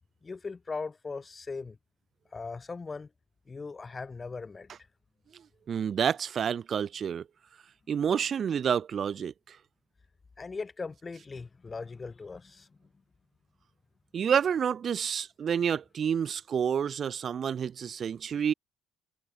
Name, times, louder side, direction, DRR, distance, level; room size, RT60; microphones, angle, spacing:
voice 1, 0.2-1.8 2.3-3.1 3.5-4.7 10.4-12.9, left 4 dB, 25° left, 0.7 m, -39 dB
voice 2, 5.7-7.2 7.9-9.6 14.1-18.5, right 8 dB, 45° right, 0.3 m, -29 dB
hypercardioid pair, 55°, 0 cm